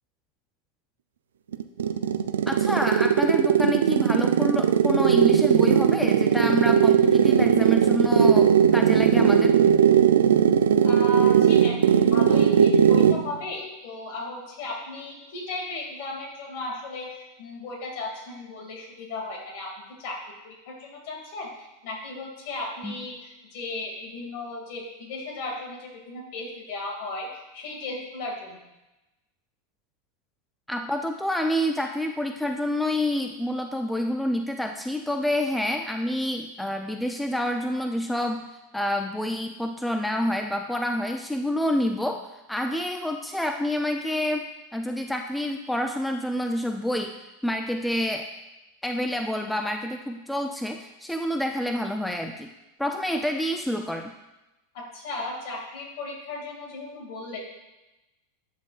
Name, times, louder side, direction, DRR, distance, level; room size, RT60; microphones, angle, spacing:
sound 1, 1.5-13.3, right 8 dB, 85° right, 0.3 m, -19 dB
voice 1, 2.5-9.6 22.8-23.0 30.7-38.5 38.7-42.2 42.5-44.4 44.7-47.1 47.4-48.3 48.8-52.5 52.8-54.1, left 1 dB, 5° left, 4 dB, 0.4 m, -28 dB
voice 2, 10.8-19.7 20.0-20.2 20.4-28.6 54.7-57.4, left 2 dB, 60° left, -1 dB, 2.2 m, -36 dB
11.0 x 4.1 x 2.4 m, 1.0 s
hypercardioid pair, 105°, 0 cm